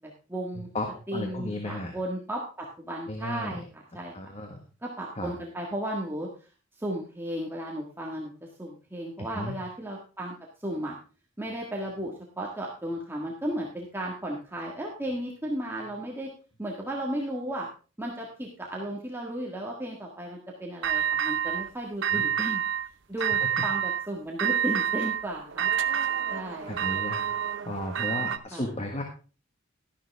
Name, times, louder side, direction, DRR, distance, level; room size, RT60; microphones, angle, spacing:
voice 1, 0.0-0.7 1.1-4.1 4.8-6.5 6.7-8.3 8.6-10.3 10.6-10.9 11.4-16.3 16.6-17.7 18.0-22.6 23.1-25.7 26.3-27.0 28.5-28.7, right 1 dB, 10° right, -2 dB, 1.6 m, -34 dB
voice 2, 0.6-1.9 3.1-3.6 4.1-4.6 5.2-5.3 9.3-9.5 22.1-22.2 23.3-23.5 26.2-26.4 26.7-27.2 27.6-29.0, left 1 dB, 30° left, 3 dB, 1.5 m, -34 dB
sound 1, 20.8-21.7 22.0-22.9 23.2-24.1 24.4-28.4, right 9 dB, 65° right, 0.6 m, -28 dB
12.5 x 11.0 x 3.4 m, 0.35 s
head